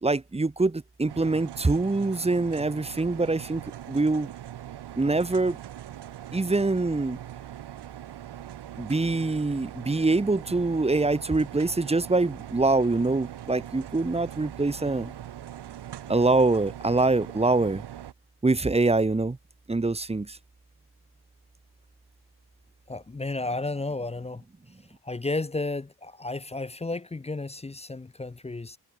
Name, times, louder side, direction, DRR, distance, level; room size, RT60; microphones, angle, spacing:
voice 1, 0.0-3.6 3.9-4.3 5.0-5.6 6.3-7.2 8.8-15.1 16.1-17.8 18.4-19.4 19.7-20.4, right 3 dB, 15° right, 1.0 m, -24 dB
sound 1, 1.1-18.1, right 11 dB, 75° right, 2.4 m, -41 dB
voice 2, 22.9-24.4 25.0-28.8, left 2 dB, 15° left, 0.7 m, -32 dB
cardioid pair, 75°, 41 cm